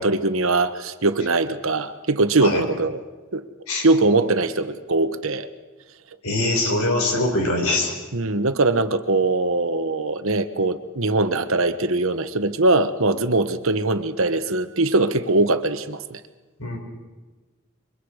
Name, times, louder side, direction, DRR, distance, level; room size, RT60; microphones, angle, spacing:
voice 1, 0.0-3.0 3.3-3.5 3.8-5.5 8.1-16.2, right 2 dB, 75° right, 10 dB, 1.2 m, -21 dB
voice 2, 6.2-7.9 16.6-16.8, left 2 dB, 90° left, 2 dB, 5.5 m, -22 dB
27.5 x 23.5 x 4.9 m, 1.2 s
head